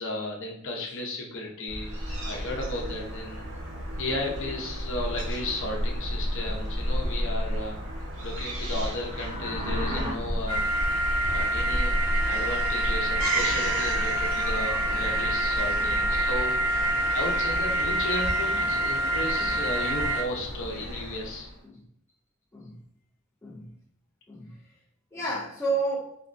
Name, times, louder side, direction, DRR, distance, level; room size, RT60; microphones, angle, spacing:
voice 1, 0.0-1.9 2.2-3.5 4.0-10.6 11.3-11.9 12.3-16.6 16.9-21.5, left 1 dB, 60° left, 0 dB, 0.9 m, -34 dB
Fowl / Gull seagull, 1.7-21.6, equal, 60° right, 1.3 m, -32 dB
sound 1, 8.7-10.1, equal, 35° right, 0.9 m, -35 dB
sound 2, 10.5-20.2, right 1 dB, 80° right, 1.6 m, -27 dB
voice 2, 12.1-12.9 15.6-16.0 18.5-18.6 19.4-19.6 21.6-21.9 22.5-22.8 23.4-23.7 24.3-24.6 25.1-26.2, right 2 dB, 10° left, -6 dB, 0.5 m, -33 dB
4.2 x 3.1 x 2.6 m, 0.70 s
head